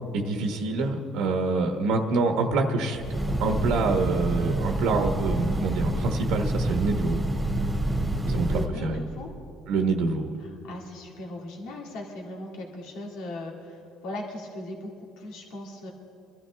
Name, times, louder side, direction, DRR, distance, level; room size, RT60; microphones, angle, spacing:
voice 1, 0.1-7.2 8.3-9.0 9.7-10.4, right 3 dB, 75° right, 4 dB, 1.2 m, -26 dB
Train, 2.9-8.7, right 1 dB, 10° right, 1.7 m, -27 dB
voice 2, 8.2-9.3 10.4-15.9, left 1 dB, 80° left, -1 dB, 2.1 m, -38 dB
24.5 x 12.5 x 3.4 m, 2.6 s
cardioid pair, 115°, 0 cm